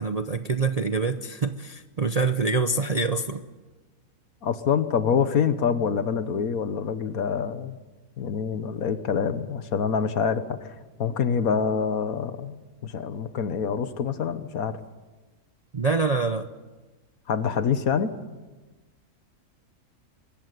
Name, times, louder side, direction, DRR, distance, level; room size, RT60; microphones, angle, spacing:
voice 1, 0.0-3.4 15.7-16.5, right 4 dB, 40° right, 8 dB, 0.5 m, -25 dB
voice 2, 4.4-7.8 8.2-10.7 11.0-12.6 12.8-14.8 17.3-18.1, left 6 dB, 70° left, 12 dB, 1.6 m, -26 dB
24.5 x 14.5 x 9.5 m, 1.2 s
omnidirectional pair, 1.6 m